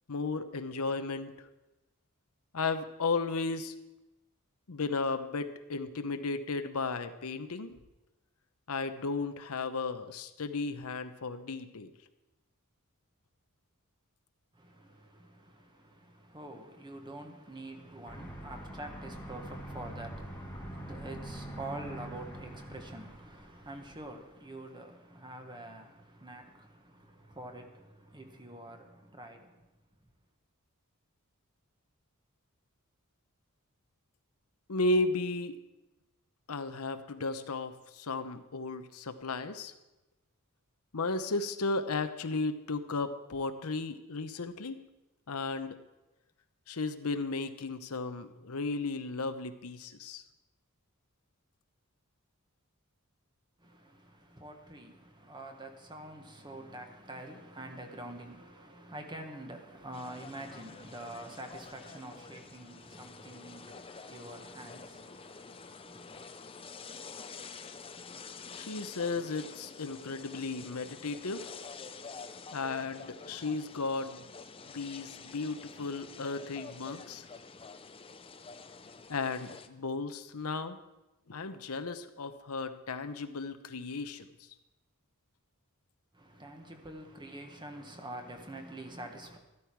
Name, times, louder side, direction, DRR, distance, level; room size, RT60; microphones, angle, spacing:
voice 1, 0.1-1.3 2.5-3.7 4.7-7.8 8.7-11.9 34.7-35.5 36.5-39.7 40.9-44.8 45.3-45.8 46.7-50.2 68.5-71.5 72.5-74.2 74.7-77.2 79.1-80.8 81.3-84.3, left 3 dB, 80° left, 0.9 m, -34 dB
voice 2, 14.5-29.6 53.6-66.3 86.1-89.4, right 1 dB, 20° right, 1.4 m, -46 dB
Aircraft, 18.0-24.2, right 1 dB, 10° left, 1.6 m, -44 dB
sound 1, 59.9-79.7, left 5 dB, 25° left, 0.6 m, -48 dB
13.0 x 13.0 x 4.7 m
head